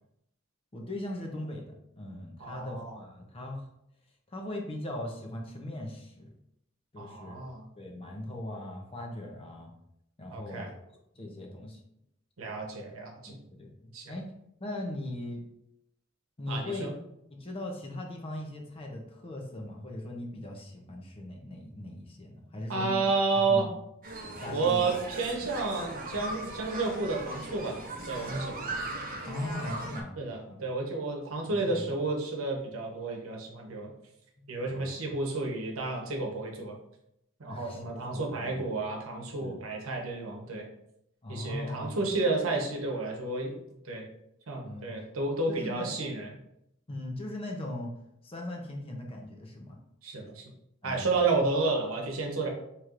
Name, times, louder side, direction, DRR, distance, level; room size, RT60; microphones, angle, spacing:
voice 1, 0.7-3.6 4.3-6.3 6.9-7.4 7.8-9.7 10.2-10.7 11.1-11.8 13.3-14.3 14.6-15.4 16.4-16.9 17.3-23.0 23.4-23.7 24.4-24.9 25.4-25.5 29.3-30.2 30.5-30.6 31.6-31.9 34.6-35.0 37.5-38.6 39.4-39.7 41.2-42.0 44.6-44.9 45.5-45.9 46.9-47.9 48.2-49.8 50.8-51.2, left 1 dB, 30° left, 1 dB, 0.6 m, -39 dB
voice 2, 2.4-3.0 7.0-7.7 10.3-10.7 12.4-13.4 13.9-14.1 16.5-16.9 22.7-23.7 24.5-27.8 28.1-28.7 30.2-33.9 34.5-36.8 37.4-40.7 41.3-43.5 43.8-44.0 44.5-46.3 50.0-50.5 50.8-52.5, right 3 dB, 90° right, 1 dB, 0.9 m, -31 dB
sound 1, 24.0-30.0, right 2 dB, 45° right, 0.6 m, -38 dB
4.5 x 3.0 x 2.5 m, 0.80 s
head